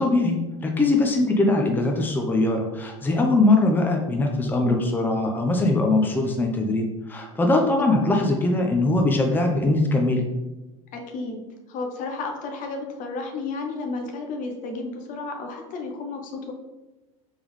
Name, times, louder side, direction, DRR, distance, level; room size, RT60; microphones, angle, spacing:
voice 1, 0.0-10.2, left 2 dB, 10° left, 2 dB, 0.6 m, -21 dB
voice 2, 10.9-11.4 11.7-16.5, left 3 dB, 50° left, 3 dB, 0.8 m, -32 dB
3.5 x 3.4 x 3.1 m, 1.0 s
hypercardioid pair, 85°, 17 cm